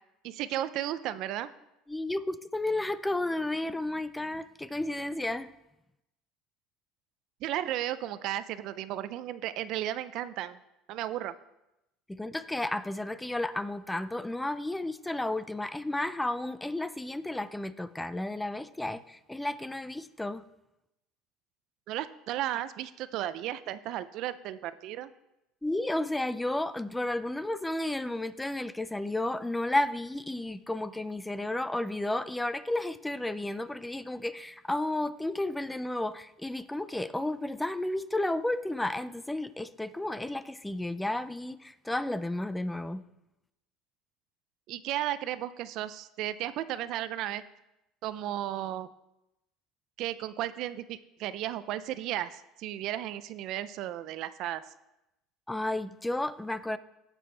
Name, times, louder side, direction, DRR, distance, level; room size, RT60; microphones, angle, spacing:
voice 1, 0.2-1.5 7.4-10.6 10.9-11.3 21.9-25.1 44.7-47.4 48.0-48.9 50.0-54.6, right 13 dB, 60° right, 14 dB, 0.5 m, -34 dB
voice 2, 1.9-5.5 12.1-20.4 25.6-43.0 55.5-56.8, left 1 dB, 10° left, 14 dB, 0.5 m, -32 dB
16.0 x 6.1 x 3.3 m, 0.90 s
supercardioid pair, 105°, 0 cm